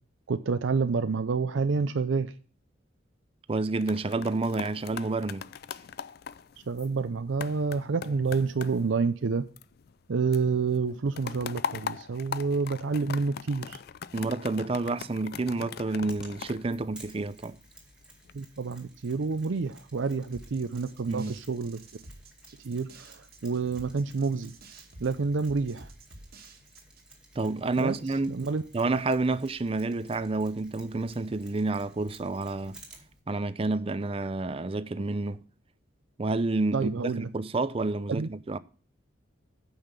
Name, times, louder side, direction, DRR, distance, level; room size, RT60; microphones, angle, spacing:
voice 1, 0.3-2.3 6.7-9.5 10.1-13.8 18.3-21.8 22.6-24.5 25.0-25.9 27.8-28.0 28.3-28.6 36.7-37.3 38.2-38.3, right 4 dB, 75° right, 0.5 m, -28 dB
voice 2, 3.5-5.5 14.1-17.6 21.1-21.3 27.4-28.3 28.7-32.8 33.3-35.4 36.2-38.6, right 3 dB, 30° right, 0.5 m, -29 dB
sound 1, 3.6-10.1 10.3-17.5 18.0-18.3, left 7 dB, 55° left, 0.4 m, -41 dB
Mechanisms, 16.1-33.2, right 2 dB, 5° right, 2.0 m, -55 dB
sound 2, 20.3-27.1, right 2 dB, 50° right, 1.5 m, -51 dB
9.0 x 5.6 x 6.7 m
head